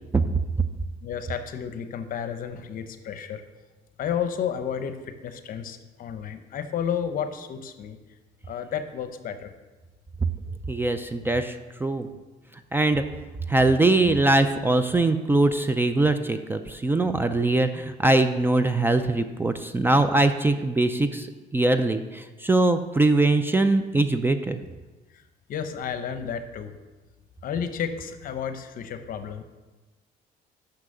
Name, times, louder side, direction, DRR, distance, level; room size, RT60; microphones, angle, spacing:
voice 1, 1.0-3.4 4.0-8.0 8.5-9.5 25.1-25.2 25.5-26.7 27.4-29.4, left 8 dB, 55° left, 9 dB, 0.8 m, -32 dB
voice 2, 10.7-12.1 12.7-13.0 13.5-24.6, right 2 dB, 15° right, 9 dB, 0.4 m, -22 dB
6.1 x 5.8 x 6.6 m, 1.2 s
cardioid pair, 110°, 17 cm